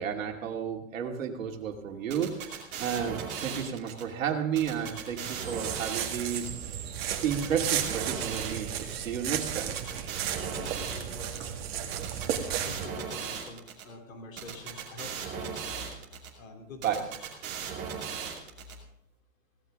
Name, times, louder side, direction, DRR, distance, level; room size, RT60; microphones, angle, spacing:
voice 1, 0.0-6.8 7.2-9.8 16.8-17.1, right 8 dB, 65° right, 3 dB, 2.7 m, -32 dB
sound 1, 2.1-4.0 4.5-6.5 7.0-8.9 9.5-11.4 11.9-13.8 14.4-16.3 16.8-18.7, right 7 dB, 25° right, 2.6 m, -37 dB
sound 2, 4.6-12.9, right 9 dB, 45° right, 2.1 m, -34 dB
voice 2, 10.5-15.8 16.4-17.0, left 3 dB, 65° left, 3 dB, 3.4 m, -47 dB
17.5 x 14.5 x 3.7 m, 0.80 s
hypercardioid pair, 160°, 42 cm